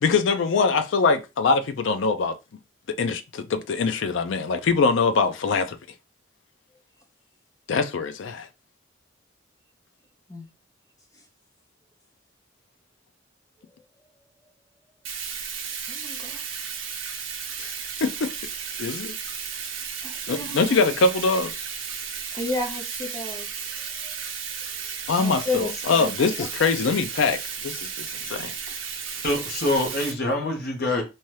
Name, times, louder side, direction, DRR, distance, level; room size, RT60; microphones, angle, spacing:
voice 1, 0.0-2.3 3.0-5.8 7.7-8.5 17.6-17.7 18.0-18.3 18.8-19.1 20.3-21.5 25.1-28.5, left 4 dB, 70° left, 0.4 m, -23 dB
Bathtub (filling or washing), 15.0-30.1, right 7 dB, 80° right, 0.6 m, -34 dB
voice 2, 15.9-16.4 20.0-20.8 22.3-24.1 25.2-26.1, left 2 dB, 20° left, 0.6 m, -32 dB
voice 3, 29.2-31.0, left 1 dB, 50° left, 0.8 m, -25 dB
2.7 x 2.3 x 3.1 m
head